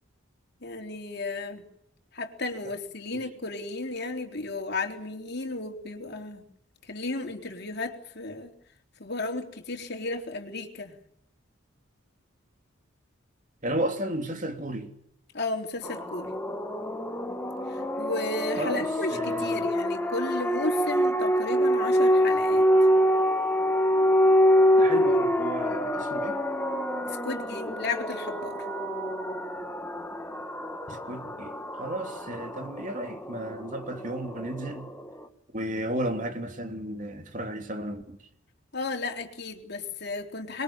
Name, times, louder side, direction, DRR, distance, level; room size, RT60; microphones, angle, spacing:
voice 1, 0.6-1.6 2.1-6.5 6.9-8.5 9.0-11.0 15.3-16.3 17.7-22.7 27.1-28.7 38.7-40.6, left 3 dB, 55° left, 3.7 m, -34 dB
voice 2, 13.6-14.9 18.6-19.7 24.8-26.4 30.9-34.9 35.5-38.3, right 1 dB, 40° right, 3.1 m, -33 dB
sound 1, 15.8-35.2, equal, 10° left, 1.9 m, -26 dB
25.5 x 22.0 x 8.9 m
head